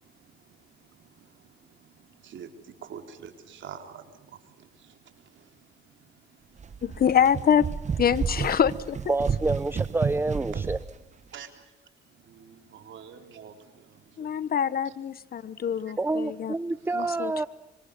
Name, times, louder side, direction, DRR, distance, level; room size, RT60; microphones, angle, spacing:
voice 1, 0.0-6.9 8.5-8.6 10.5-10.6 11.3-11.7 12.0-14.5 14.9-15.0 15.4-15.8 16.8-17.2, right 8 dB, 70° right, 3.7 m, -48 dB
sound 1, 6.6-10.9, right 6 dB, 35° right, 1.0 m, -31 dB
voice 2, 6.8-7.7 8.0-9.0 14.2-16.5 16.9-17.5, left 8 dB, 50° left, 1.1 m, -25 dB
voice 3, 9.1-10.8 16.0-17.5, right 2 dB, 10° right, 0.7 m, -28 dB
26.0 x 25.5 x 5.4 m
cardioid pair, 90°, 20 cm